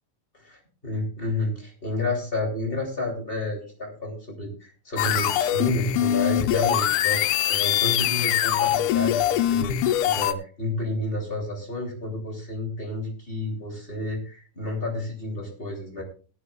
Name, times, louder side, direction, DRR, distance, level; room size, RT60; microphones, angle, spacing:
voice 1, 0.4-16.0, left 2 dB, 15° left, -2 dB, 2.9 m, -30 dB
sound 1, 5.0-10.3, left 11 dB, 90° left, 2.7 m, -23 dB
19.0 x 11.5 x 2.4 m, 0.37 s
omnidirectional pair, 4.3 m